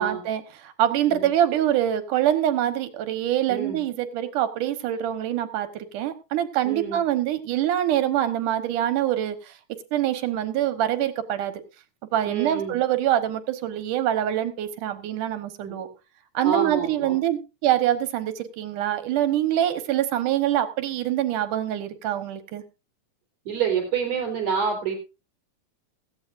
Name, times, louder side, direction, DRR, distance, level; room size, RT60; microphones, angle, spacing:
voice 1, 0.0-9.5 9.9-11.6 12.1-15.9 16.3-22.6, right 11 dB, 75° right, 11 dB, 2.7 m, -25 dB
voice 2, 3.5-3.8 6.6-7.0 12.3-12.8 15.6-15.7 16.4-17.2 23.5-24.9, right 6 dB, 55° right, 4 dB, 5.2 m, -27 dB
17.0 x 14.5 x 2.6 m, 0.28 s
omnidirectional pair, 3.7 m